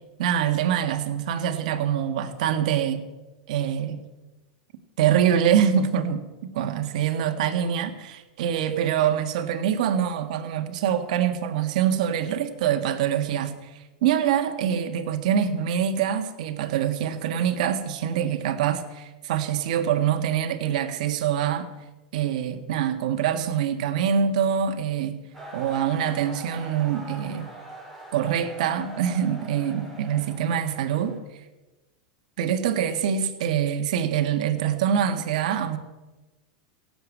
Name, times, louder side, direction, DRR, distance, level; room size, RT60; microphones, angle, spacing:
voice 1, 0.2-3.0 3.5-4.0 5.0-13.5 14.0-21.7 22.1-25.2 25.5-27.5 28.1-31.2 32.4-35.8, right 9 dB, 70° right, 7 dB, 1.7 m, -25 dB
sound 1, 25.3-31.2, right 1 dB, 5° left, 4.6 m, -42 dB
16.5 x 8.0 x 8.5 m, 1.1 s
supercardioid pair, 120°, 4 cm